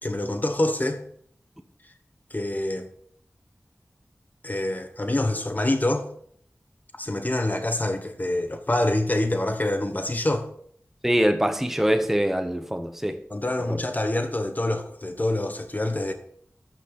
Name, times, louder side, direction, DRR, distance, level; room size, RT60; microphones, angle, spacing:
voice 1, 0.0-1.0 2.3-2.9 4.4-6.1 7.0-10.5 13.3-16.1, left 1 dB, 35° left, 1.2 m, -26 dB
voice 2, 11.0-13.2 13.7-13.8, equal, 5° right, 0.8 m, -23 dB
12.0 x 6.2 x 4.1 m
wide cardioid pair, 65°, 5 cm